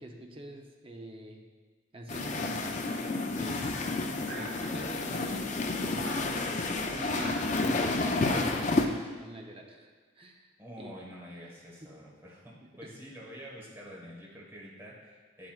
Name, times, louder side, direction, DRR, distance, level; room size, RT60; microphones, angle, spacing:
voice 1, 0.0-1.4 1.9-4.0 4.3-6.5 6.9-10.5 10.8-10.9 11.8-11.9 12.8-12.9, right 1 dB, 30° right, 1 dB, 0.7 m, -46 dB
sound 1, 2.1-8.9, left 3 dB, 40° left, 0.5 m, -30 dB
sound 2, 4.2-5.0 5.9-6.3 7.0-7.4 8.2-8.7, right 1 dB, 60° right, 1.8 m, -41 dB
voice 2, 10.6-15.5, equal, 15° right, -5 dB, 1.4 m, -47 dB
9.4 x 7.5 x 2.4 m, 1.4 s
head